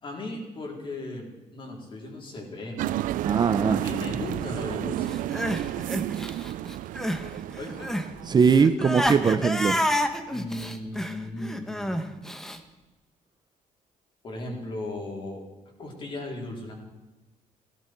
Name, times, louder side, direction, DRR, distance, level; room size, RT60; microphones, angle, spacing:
voice 1, 0.0-1.3 1.5-3.1 3.3-5.2 7.6-7.9 10.3-12.0 14.2-15.4 15.8-16.8, left 2 dB, 35° left, 0 dB, 3.9 m, -36 dB
sound 1, 2.8-8.7, right 14 dB, 80° right, 0.4 m, -31 dB
voice 2, 3.2-3.8 8.3-9.8, right 5 dB, 30° right, 10 dB, 0.7 m, -21 dB
Crying sobbing, 5.1-7.3 7.5-12.6, equal, 5° left, 1.1 m, -29 dB
16.0 x 14.0 x 4.6 m, 1.1 s
cardioid pair, 145°, 14 cm